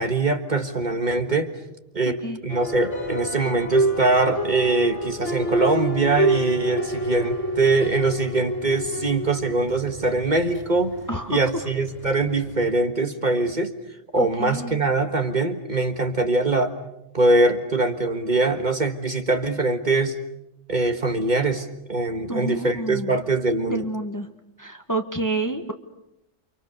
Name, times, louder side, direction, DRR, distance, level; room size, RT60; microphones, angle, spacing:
voice 1, 0.0-1.5 1.9-11.0 11.3-13.7 14.1-16.7 17.1-20.2 20.7-23.8, right 2 dB, 35° right, 6 dB, 1.7 m, -22 dB
voice 2, 2.0-2.4 11.1-11.4 14.2-14.8 22.3-23.2 23.7-24.3 24.6-25.7, right 1 dB, 15° left, 6 dB, 1.4 m, -29 dB
sound 1, 2.5-12.7, right 1 dB, 65° left, 4.0 m, -29 dB
29.5 x 25.5 x 6.7 m, 0.86 s
omnidirectional pair, 1.3 m